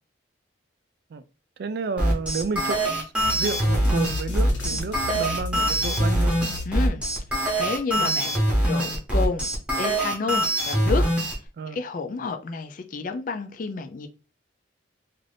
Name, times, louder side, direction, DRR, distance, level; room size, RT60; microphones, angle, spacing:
voice 1, 1.6-6.3 8.0-8.2 11.6-11.8, right 4 dB, 55° right, 0.3 m, -31 dB
sound 1, 2.0-11.3, right 1 dB, 5° right, 0.8 m, -23 dB
sound 2, 3.2-7.5, left 3 dB, 85° left, 1.1 m, -34 dB
voice 2, 6.7-7.0 7.6-8.4 8.7-9.5 9.7-11.0 11.7-14.1, left 4 dB, 45° left, 0.4 m, -30 dB
2.5 x 2.5 x 3.3 m
head